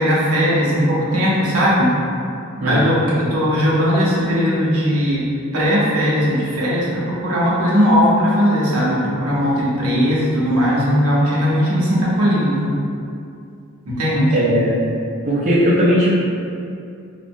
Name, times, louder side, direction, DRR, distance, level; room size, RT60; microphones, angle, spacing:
voice 1, 0.0-1.9 2.6-5.2 5.5-12.7 13.8-14.4, equal, 80° right, -6 dB, 0.7 m, -18 dB
voice 2, 2.6-2.9 14.3-14.8 15.3-16.1, equal, 35° right, -9 dB, 0.4 m, -17 dB
3.1 x 2.0 x 2.6 m, 2.5 s
head